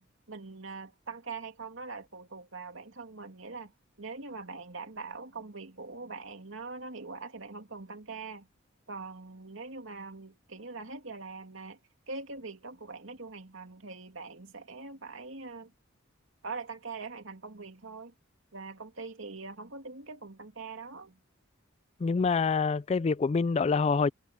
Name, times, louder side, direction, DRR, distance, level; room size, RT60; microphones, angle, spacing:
voice 1, 0.0-3.7 4.0-8.5 8.9-11.8 12.1-15.7 16.4-18.1 18.5-21.2, right 4 dB, 70° right, 2.8 m, -43 dB
voice 2, 22.0-24.1, left 4 dB, 30° left, 0.3 m, -26 dB
head